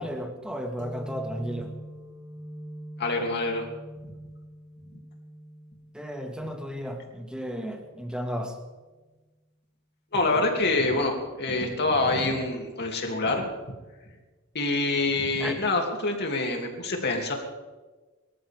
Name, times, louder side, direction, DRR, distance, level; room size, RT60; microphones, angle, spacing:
voice 1, 0.0-1.7 5.9-8.6 15.4-15.6, equal, 5° right, 3 dB, 1.9 m, -34 dB
sound 1, 0.8-8.1, right 1 dB, 55° right, 3.7 m, -44 dB
voice 2, 3.0-3.7 10.1-13.5 14.5-17.3, left 2 dB, 50° left, 1 dB, 2.9 m, -26 dB
24.0 x 14.0 x 3.7 m, 1.2 s
head